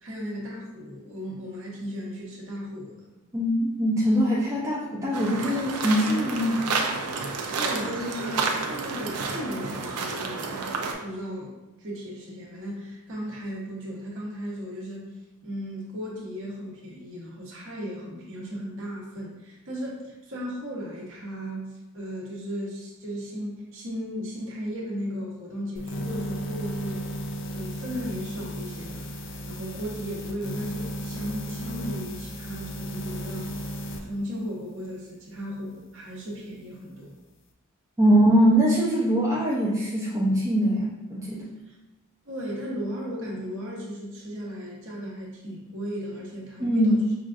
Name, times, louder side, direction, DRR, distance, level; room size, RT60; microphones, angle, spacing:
voice 1, 0.0-2.9 7.1-11.5 11.8-15.1 15.4-27.0 27.5-33.5 34.0-37.1 41.7-41.8 42.2-47.0, equal, 60° right, -4 dB, 1.0 m, -36 dB
voice 2, 3.3-6.6 38.0-41.4 46.6-47.0, equal, 15° right, -6 dB, 0.5 m, -22 dB
sound 1, 5.1-10.9, right 4 dB, 90° right, 0.5 m, -30 dB
sound 2, 25.8-34.0, equal, 55° left, 0.4 m, -34 dB
5.4 x 2.4 x 2.4 m, 1.0 s
head